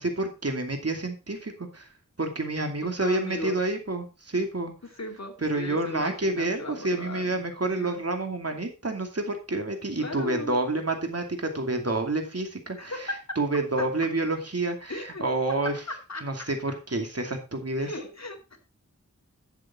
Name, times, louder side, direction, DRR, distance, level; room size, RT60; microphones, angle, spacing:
voice 1, 0.0-1.9 2.2-4.7 5.4-13.1 13.4-15.7 16.2-17.9, right 2 dB, 50° right, 5 dB, 2.5 m, -29 dB
voice 2, 2.8-3.6 4.9-7.4 7.7-8.0 10.0-10.5 12.8-13.2 13.8-13.9 14.9-15.2 15.9-16.5 17.8-18.6, left 2 dB, 60° left, 3 dB, 2.6 m, -37 dB
11.5 x 7.5 x 4.3 m, 0.30 s
wide cardioid pair, 60°, 31 cm